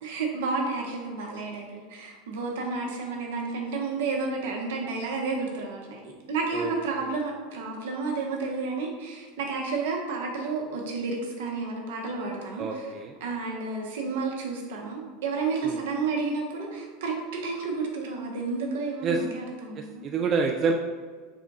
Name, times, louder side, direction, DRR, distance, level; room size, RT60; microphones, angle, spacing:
voice 1, 0.0-12.9 13.2-20.1, right 4 dB, 75° right, 0 dB, 0.8 m, -31 dB
voice 2, 12.6-13.1 15.6-15.8 19.0-19.2 19.7-20.7, right 5 dB, 40° right, 1 dB, 0.3 m, -27 dB
3.5 x 2.3 x 3.9 m, 1.5 s
hypercardioid pair, 100°, 0 cm